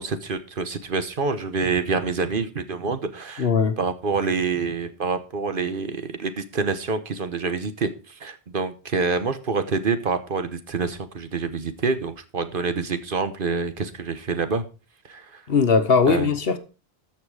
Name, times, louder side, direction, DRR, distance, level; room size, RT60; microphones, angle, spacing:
voice 1, 0.0-3.5 3.8-14.6 15.1-15.4 16.1-16.3, right 4 dB, 60° right, 1.2 m, -27 dB
voice 2, 3.4-3.8 15.5-16.6, left 5 dB, 70° left, 1.3 m, -19 dB
13.5 x 6.0 x 4.8 m
omnidirectional pair, 1.0 m